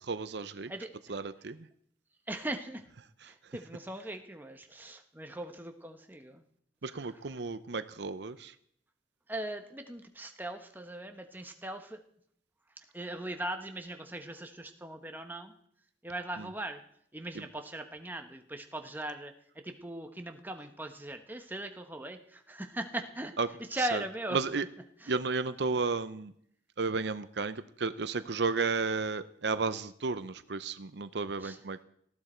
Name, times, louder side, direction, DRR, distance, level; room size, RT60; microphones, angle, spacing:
voice 1, 0.1-0.7 1.1-1.6 6.8-8.5 16.4-16.5 17.3-17.4 23.4-23.5 23.8-24.0 24.3-24.6 25.1-26.3 26.8-31.8, right 4 dB, 65° right, 13 dB, 0.7 m, -33 dB
voice 2, 2.3-2.8 3.2-6.4 6.9-7.1 9.3-12.0 12.9-15.5 16.0-16.8 17.1-19.3 19.6-23.4 23.7-24.4 25.0-25.1 31.4-31.6, right 1 dB, 10° right, 5 dB, 1.2 m, -39 dB
19.0 x 14.0 x 4.5 m, 0.67 s
head